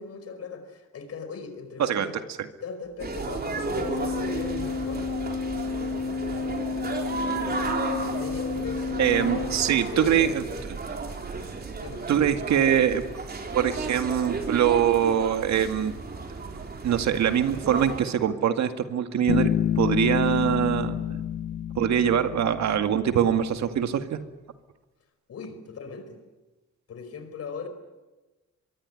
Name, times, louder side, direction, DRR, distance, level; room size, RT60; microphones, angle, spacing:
voice 1, 0.0-2.3 2.6-5.1 8.0-10.5 11.7-12.1 25.3-26.2 26.9-27.7, left 5 dB, 55° left, 9 dB, 5.2 m, -38 dB
sound 1, 3.0-18.0, right 3 dB, 35° right, 4.1 m, -33 dB
Organ, 3.7-10.3, left 5 dB, 35° left, 1.4 m, -32 dB
voice 2, 9.0-10.4 12.1-13.0 13.5-15.9 16.8-21.0 21.8-24.2, right 9 dB, 65° right, 8 dB, 2.2 m, -23 dB
Bass guitar, 19.3-23.0, left 10 dB, 80° left, 1.3 m, -28 dB
24.5 x 23.0 x 10.0 m, 1.2 s
cardioid pair, 125°, 29 cm